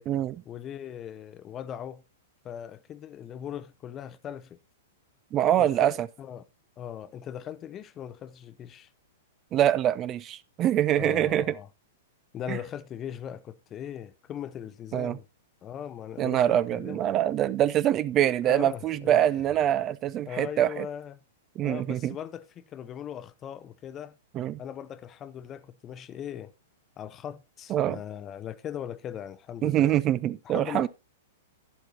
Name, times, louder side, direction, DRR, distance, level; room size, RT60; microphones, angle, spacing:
voice 1, 0.4-2.0 2.4-4.6 5.6-6.4 6.8-8.9 11.0-11.7 12.3-15.3 15.6-17.0 18.4-19.2 19.5-19.6 20.3-21.2 21.6-24.2 24.6-26.5 27.0-30.0 30.4-30.9, left 9 dB, 25° left, 0.6 m, -39 dB
voice 2, 5.3-6.1 9.5-11.4 12.5-12.6 14.9-15.2 16.2-20.9 21.6-22.1 24.3-24.6 27.7-28.0 29.6-30.9, right 11 dB, 30° right, 0.4 m, -24 dB
11.5 x 10.0 x 2.7 m
figure-of-eight pair, 105°, 0 cm